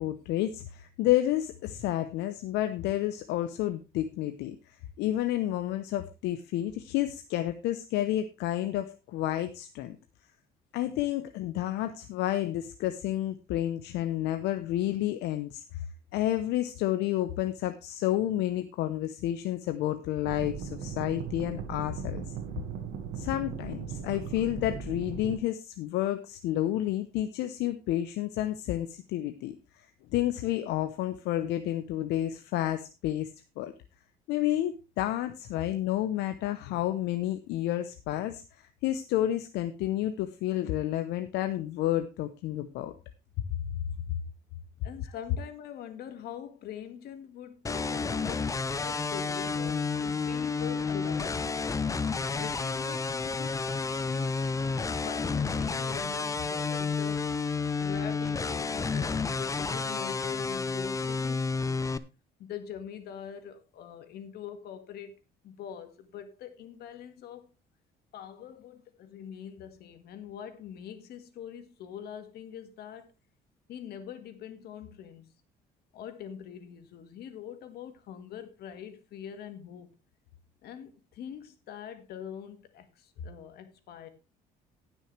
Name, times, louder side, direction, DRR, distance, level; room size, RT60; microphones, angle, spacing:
voice 1, 0.0-10.0 10.7-15.8 16.1-22.3 23.2-29.9 30.1-33.3 33.6-33.7 34.3-42.9, left 13 dB, 85° left, 0.8 m, -30 dB
sound 1, 20.2-25.4, right 6 dB, 80° right, 1.8 m, -38 dB
voice 2, 44.8-51.8 52.3-54.3 54.9-57.2 57.8-61.9 62.4-65.1 65.4-67.5 68.1-73.1 73.7-75.3 75.9-80.0 80.6-84.1, left 8 dB, 70° left, 1.8 m, -43 dB
sound 2, 47.6-62.0, left 4 dB, 20° left, 0.6 m, -31 dB
18.0 x 6.3 x 3.3 m
cardioid pair, 110°, 17 cm